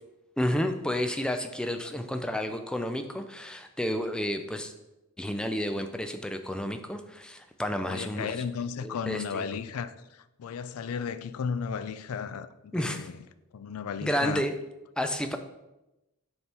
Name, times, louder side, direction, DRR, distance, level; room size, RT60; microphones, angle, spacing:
voice 1, 0.4-4.7 5.2-8.4 8.8-9.5 12.7-13.1 14.0-14.5 15.0-15.4, equal, 5° left, 0.3 m, -31 dB
voice 2, 7.9-13.3 13.5-14.5, left 6 dB, 80° left, 0.4 m, -35 dB
6.7 x 3.4 x 4.3 m
head